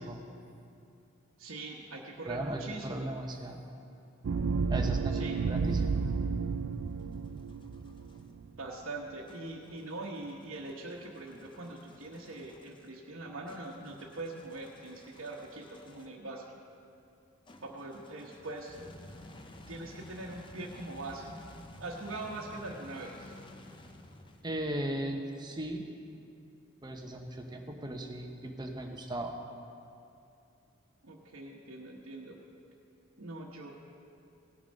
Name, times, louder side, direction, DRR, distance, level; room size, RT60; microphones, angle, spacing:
voice 1, 1.4-3.2 5.1-5.4 8.6-16.4 17.6-18.8 19.1-19.2 19.7-21.4 21.8-23.3 31.0-32.4 33.2-33.7, right 2 dB, 85° right, -3 dB, 1.0 m, -42 dB
voice 2, 2.3-3.6 4.7-6.0 24.4-25.8 26.8-29.4, right 1 dB, 20° right, 3 dB, 0.9 m, -37 dB
sound 1, 4.2-8.5, right 4 dB, 65° right, 0.4 m, -31 dB
sound 2, 6.7-8.3 9.3-16.3 17.4-24.7, left 1 dB, 25° left, 0.6 m, -53 dB
17.5 x 7.0 x 5.3 m, 2.6 s
head